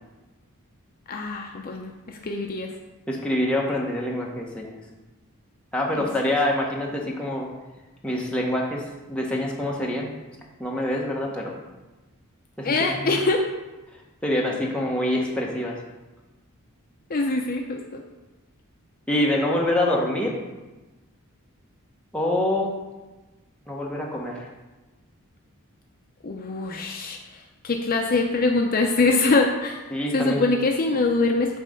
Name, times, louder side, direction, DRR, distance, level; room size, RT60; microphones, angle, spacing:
voice 1, 1.1-2.7 5.9-6.1 12.6-13.5 17.1-18.0 26.2-29.8 30.1-31.6, left 3 dB, 40° left, 2 dB, 0.6 m, -24 dB
voice 2, 3.1-4.7 5.7-7.5 8.0-8.8 9.1-10.1 10.6-11.5 12.6-13.2 14.2-15.8 19.1-20.3 22.1-22.7 23.7-24.5 29.9-30.4, left 1 dB, 5° left, -3 dB, 1.1 m, -25 dB
9.1 x 3.2 x 6.4 m, 1.1 s
head